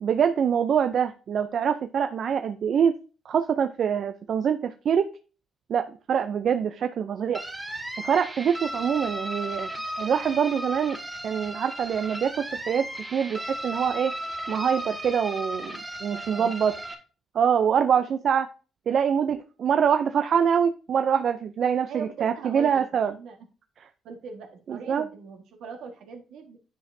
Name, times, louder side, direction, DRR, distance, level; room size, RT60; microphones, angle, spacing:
voice 1, 0.0-2.9 3.3-5.1 5.7-7.4 8.0-9.7 10.0-11.0 11.2-14.1 14.5-16.7 17.3-18.5 18.9-23.1 24.7-25.1, right 7 dB, 60° right, 8 dB, 0.4 m, -24 dB
sound 1, 7.3-16.9, right 1 dB, 10° right, 1.4 m, -35 dB
voice 2, 16.1-16.6 21.9-23.4 24.0-26.6, right 5 dB, 80° right, 3 dB, 1.4 m, -41 dB
9.7 x 5.1 x 2.6 m, 0.36 s
cardioid pair, 90°, 0 cm